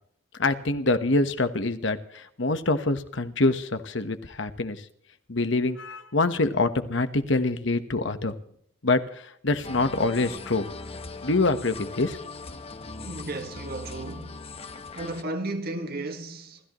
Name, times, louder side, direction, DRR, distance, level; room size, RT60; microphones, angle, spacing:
voice 1, 0.3-4.9 5.3-8.3 8.8-10.7 11.2-12.2, left 2 dB, 70° left, 1.3 m, -25 dB
sound 1, 9.6-15.2, left 3 dB, 30° left, 1.1 m, -40 dB
voice 2, 13.0-14.4 15.0-16.6, right 2 dB, 55° right, 1.7 m, -34 dB
28.5 x 14.0 x 3.1 m
head